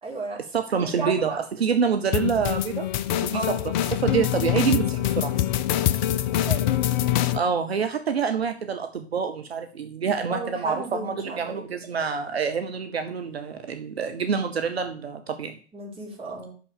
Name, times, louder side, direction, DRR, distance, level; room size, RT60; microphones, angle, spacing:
voice 1, 0.0-0.4 1.0-1.4 3.3-3.5 6.2-6.6 10.3-11.6 15.7-16.5, right 3 dB, 20° right, -4 dB, 4.3 m, -33 dB
voice 2, 0.5-2.9 3.2-3.4 3.9-5.3 7.3-15.6, right 6 dB, 70° right, 8 dB, 1.0 m, -26 dB
sound 1, 2.1-7.4, left 12 dB, 45° left, 0.7 m, -24 dB
6.2 x 6.2 x 6.7 m, 0.41 s
figure-of-eight pair, 100°, 32 cm